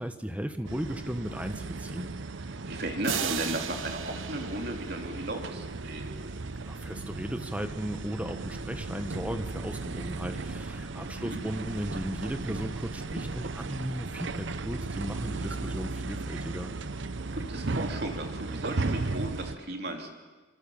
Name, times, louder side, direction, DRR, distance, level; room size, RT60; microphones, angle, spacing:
voice 1, 0.0-2.1 6.5-16.7, equal, 5° right, 8 dB, 1.3 m, -36 dB
sound 1, 0.6-19.6, right 3 dB, 70° right, 0.9 m, -36 dB
voice 2, 2.7-6.2 11.2-11.4 17.3-20.1, right 1 dB, 55° right, 3 dB, 3.2 m, -35 dB
sound 2, 3.0-5.9, right 7 dB, 90° right, 1.2 m, -36 dB
25.0 x 24.5 x 7.2 m, 1.3 s
head